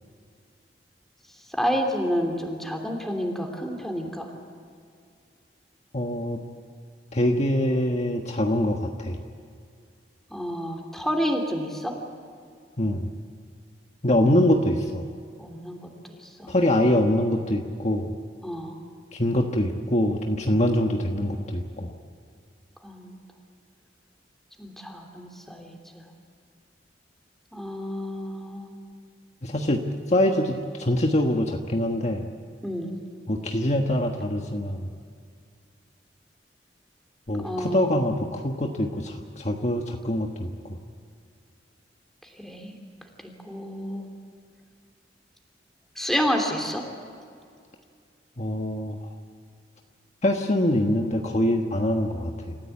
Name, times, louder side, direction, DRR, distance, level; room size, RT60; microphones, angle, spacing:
voice 1, 1.5-4.3 10.3-12.0 15.4-15.9 16.2-16.5 18.4-18.7 22.8-23.1 24.6-26.0 27.5-28.7 32.6-32.9 37.4-37.9 42.4-42.7 43.2-44.1 46.0-46.8, equal, ahead, 2 dB, 3.1 m, -29 dB
voice 2, 5.9-6.4 7.1-9.2 12.8-13.1 14.0-15.1 16.5-18.1 19.1-21.9 29.4-29.8 30.1-32.2 33.3-34.9 37.3-40.5 48.4-49.1 50.2-52.6, left 1 dB, 40° left, 2 dB, 1.3 m, -24 dB
28.0 x 15.0 x 8.5 m, 2.3 s
head